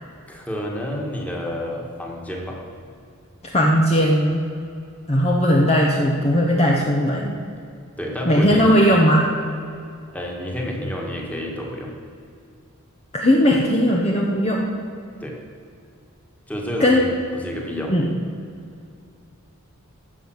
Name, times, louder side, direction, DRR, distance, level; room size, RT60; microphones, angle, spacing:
voice 1, 0.3-2.6 8.0-8.8 10.1-11.9 15.2-15.4 16.5-17.1 17.3-17.9, equal, 5° left, -1 dB, 1.9 m, -29 dB
voice 2, 3.5-4.5 5.1-7.3 8.3-9.3 13.1-14.7 16.8-17.0 17.9-18.1, equal, 30° left, -1 dB, 1.0 m, -18 dB
14.0 x 5.7 x 7.9 m, 2.4 s
head